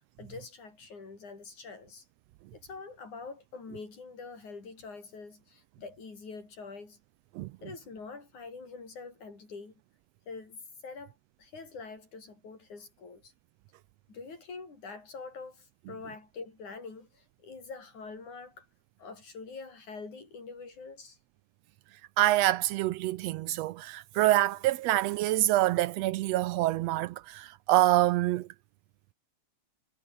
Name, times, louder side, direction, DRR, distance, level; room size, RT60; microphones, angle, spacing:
voice 1, 0.2-2.1 2.5-7.0 7.6-9.7 10.3-13.3 14.1-18.7 19.0-21.2, left 4 dB, 75° left, 7.8 m, -45 dB
voice 2, 22.2-28.5, right 15 dB, 80° right, 1.5 m, -26 dB
omnidirectional pair, 3.4 m